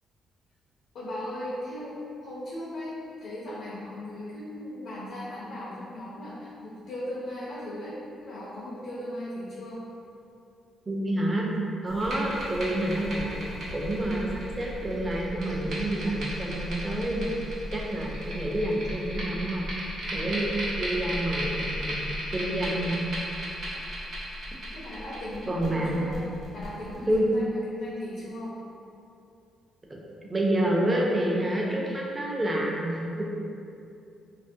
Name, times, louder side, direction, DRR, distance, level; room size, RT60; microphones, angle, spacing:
voice 1, 0.9-2.0 2.2-9.8 24.7-26.2 26.5-28.6, left 1 dB, 75° left, -9 dB, 0.5 m, -37 dB
voice 2, 10.9-11.5 11.8-13.4 13.7-14.3 14.6-17.4 17.7-19.7 20.1-20.5 20.8-23.1 25.5-26.0 27.1-27.3 29.9-30.0 30.3-33.2, right 1 dB, 20° right, -3 dB, 0.5 m, -28 dB
sound 1, 11.9-27.2, equal, 65° right, 0.7 m, -35 dB
2.4 x 2.0 x 2.6 m, 2.6 s
cardioid pair, 90°, 0 cm